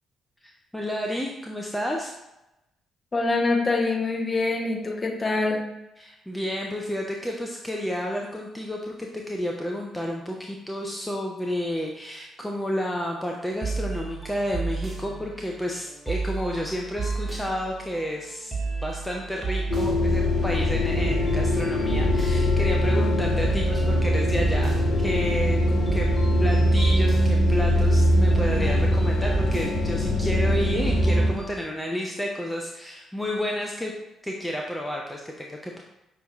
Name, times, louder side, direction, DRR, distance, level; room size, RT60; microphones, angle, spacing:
voice 1, 0.4-2.1 6.0-18.5 18.8-26.1 26.4-33.9 34.2-35.8, equal, 10° left, 0 dB, 0.5 m, -31 dB
voice 2, 3.1-5.6, left 3 dB, 30° left, 0 dB, 0.9 m, -24 dB
sound 1, 13.5-31.6, right 4 dB, 15° right, 1.3 m, -33 dB
sound 2, 19.7-31.3, left 1 dB, 50° left, 1.2 m, -22 dB
5.5 x 2.7 x 3.0 m, 0.94 s
figure-of-eight pair, 40°, 0 cm